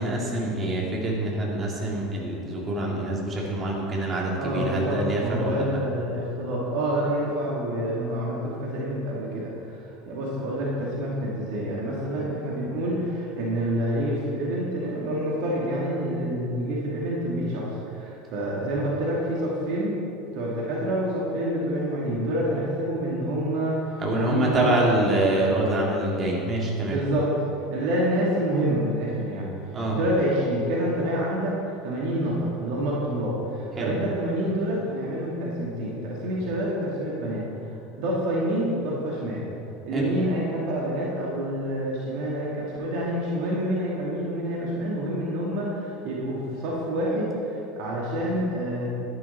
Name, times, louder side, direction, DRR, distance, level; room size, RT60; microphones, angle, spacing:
voice 1, 0.0-5.6 24.0-27.0 29.7-30.0 33.8-33.9 39.9-40.1, right 1 dB, 30° right, -3 dB, 2.8 m, -25 dB
voice 2, 4.4-20.0 20.3-25.1 26.9-27.3 27.7-29.5 29.9-37.4 38.0-39.4 39.9-48.9, right 1 dB, 55° right, -4 dB, 2.3 m, -27 dB
11.5 x 11.0 x 4.4 m, 2.6 s
figure-of-eight pair, 75°, 0 cm